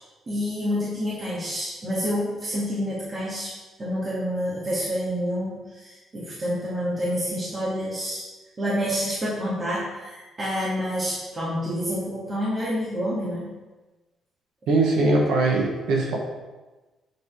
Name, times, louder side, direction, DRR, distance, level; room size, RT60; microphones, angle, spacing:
voice 1, 0.3-3.5 3.8-8.2 8.6-13.5 14.6-14.8, equal, 35° right, -8 dB, 2.6 m, -28 dB
voice 2, 14.7-16.2, right 2 dB, 80° right, -1 dB, 1.9 m, -21 dB
7.9 x 7.0 x 3.6 m, 1.2 s
cardioid pair, 90°, 0 cm